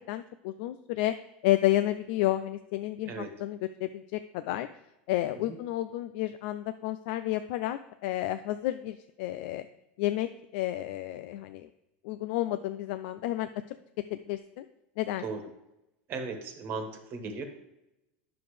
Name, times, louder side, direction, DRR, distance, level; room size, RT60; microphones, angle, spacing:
voice 1, 0.1-1.1 1.4-4.7 5.1-9.6 10.0-10.3 10.5-11.7 12.0-13.8 14.1-14.7 15.0-15.2, left 14 dB, 65° left, 10 dB, 0.4 m, -31 dB
voice 2, 16.1-17.4, right 4 dB, 40° right, 6 dB, 1.4 m, -37 dB
9.4 x 6.9 x 3.3 m, 0.91 s
supercardioid pair, 125°, 6 cm